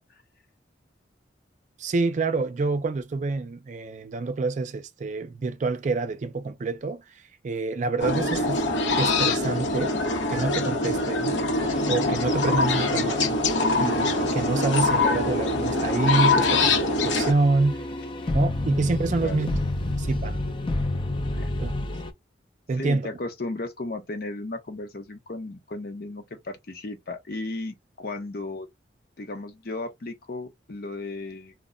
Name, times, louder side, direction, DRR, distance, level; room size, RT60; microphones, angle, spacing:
voice 1, 1.8-7.0 7.4-8.6 9.0-9.9 10.3-11.4 11.9-13.4 13.8-17.9 18.3-19.6 20.0-20.4 21.6-21.9 22.7-23.1, right 3 dB, 40° right, 0.4 m, -27 dB
sound 1, 8.0-17.3, left 2 dB, 90° left, 0.8 m, -24 dB
sound 2, 11.6-22.1, left 1 dB, 25° left, 0.4 m, -31 dB
voice 2, 22.8-28.7 29.2-31.5, left 2 dB, 55° left, 0.7 m, -35 dB
2.2 x 2.1 x 3.6 m
head